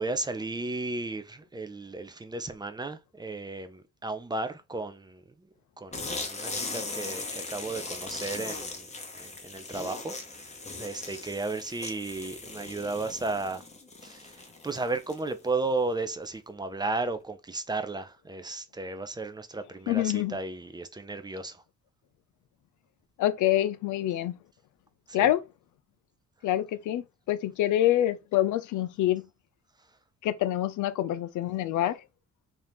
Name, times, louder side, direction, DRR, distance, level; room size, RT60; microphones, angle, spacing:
voice 1, 0.0-5.2 5.8-8.9 9.2-10.1 10.4-10.5 10.8-13.6 14.0-21.6 25.1-25.3, right 3 dB, 15° right, 0.5 m, -34 dB
sound 1, 5.9-15.4, left 3 dB, 20° left, 0.8 m, -39 dB
voice 2, 19.9-20.4 23.2-24.3 25.1-25.4 26.4-29.2 30.2-32.0, left 13 dB, 75° left, 0.5 m, -26 dB
2.8 x 2.5 x 3.4 m
cardioid pair, 90°, 30 cm